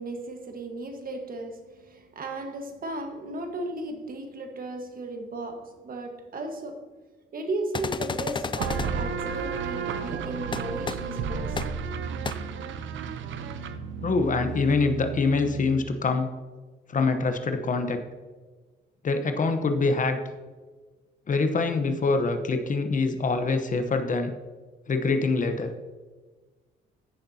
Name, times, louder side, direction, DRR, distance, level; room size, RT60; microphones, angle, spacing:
voice 1, 0.0-6.9 7.3-12.0, right 2 dB, 45° right, 1.5 m, -35 dB
sound 1, 7.7-8.9 10.5-10.6 10.9-11.0 11.6-11.7 12.2-12.3, left 5 dB, 25° left, 0.5 m, -30 dB
sound 2, 8.6-16.0, right 6 dB, 75° right, 0.8 m, -33 dB
voice 2, 14.0-16.3 16.9-18.0 19.0-20.2 21.3-24.3 24.9-25.7, left 3 dB, 40° left, 1.0 m, -25 dB
15.0 x 6.5 x 2.9 m
cardioid pair, 90°, 20 cm